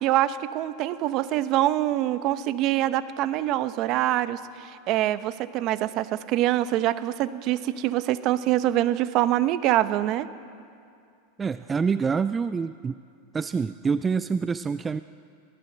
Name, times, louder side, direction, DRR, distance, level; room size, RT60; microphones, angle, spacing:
voice 1, 0.0-10.3, right 14 dB, 45° right, 13 dB, 0.9 m, -25 dB
voice 2, 11.4-13.0 13.3-15.0, right 5 dB, 20° right, 13 dB, 0.4 m, -26 dB
22.5 x 16.5 x 7.9 m, 2.4 s
hypercardioid pair, 120°, 0 cm